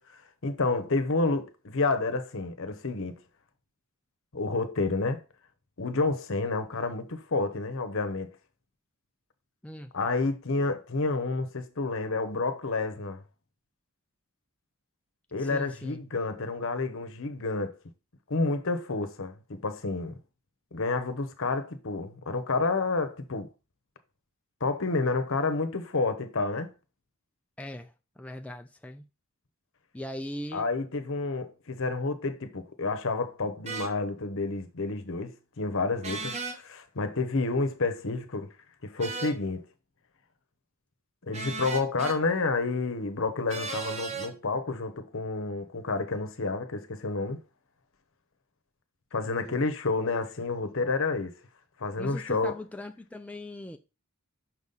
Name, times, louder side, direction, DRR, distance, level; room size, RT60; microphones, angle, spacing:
voice 1, 0.0-3.2 4.3-5.2 5.8-8.3 9.9-13.2 15.3-17.8 18.3-20.2 20.7-23.5 24.6-26.7 30.5-38.5 38.8-39.7 41.2-47.4 49.1-51.4 51.8-52.5, left 3 dB, 60° left, 0.9 m, -29 dB
voice 2, 15.4-16.0 27.6-29.1 29.9-30.7 49.2-49.7 52.0-53.8, left 1 dB, 5° left, 0.4 m, -40 dB
sound 1, 33.7-33.9 36.0-36.6 39.0-39.4 41.3-42.2 43.5-44.3, right 4 dB, 30° right, 1.0 m, -35 dB
6.0 x 4.1 x 5.4 m
head